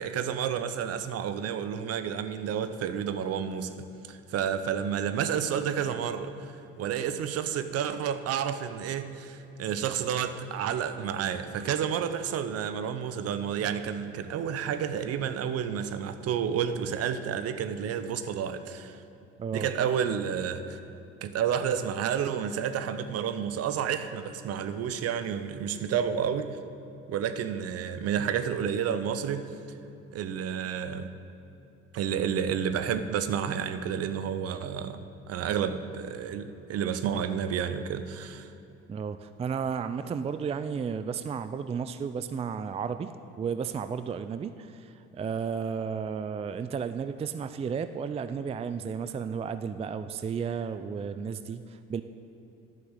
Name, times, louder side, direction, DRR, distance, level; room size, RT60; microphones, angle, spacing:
voice 1, 0.0-19.0 19.5-20.8 21.2-26.6 27.1-29.5 30.1-31.1 31.9-35.0 35.3-38.5, right 8 dB, 55° right, 10 dB, 0.8 m, -30 dB
voice 2, 19.4-19.7 38.9-43.1 43.4-52.0, right 6 dB, 20° right, 11 dB, 0.4 m, -33 dB
10.5 x 5.9 x 8.0 m, 2.8 s
supercardioid pair, 75°, 29 cm